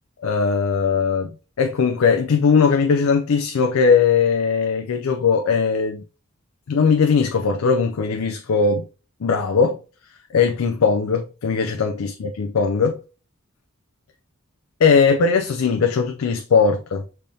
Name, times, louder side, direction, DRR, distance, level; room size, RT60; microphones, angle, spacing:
voice 1, 0.2-1.3 1.6-6.0 6.7-8.8 9.2-9.8 10.3-13.0 14.8-17.0, left 5 dB, 75° left, 0.5 m, -19 dB
5.3 x 3.4 x 2.7 m
head